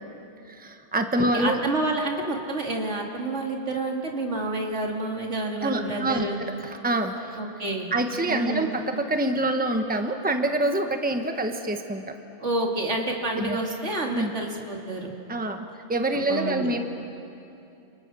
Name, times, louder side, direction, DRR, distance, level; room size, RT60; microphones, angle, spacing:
voice 1, 0.5-1.6 5.6-7.4 7.9-12.2 13.3-13.6 14.1-14.3 15.3-16.8, right 1 dB, 10° right, 5 dB, 1.3 m, -26 dB
voice 2, 1.3-6.4 7.4-7.9 8.3-8.7 12.4-15.1 16.1-16.7, right 2 dB, 75° right, 0 dB, 3.0 m, -29 dB
29.5 x 28.0 x 6.3 m, 2.7 s
omnidirectional pair, 1.2 m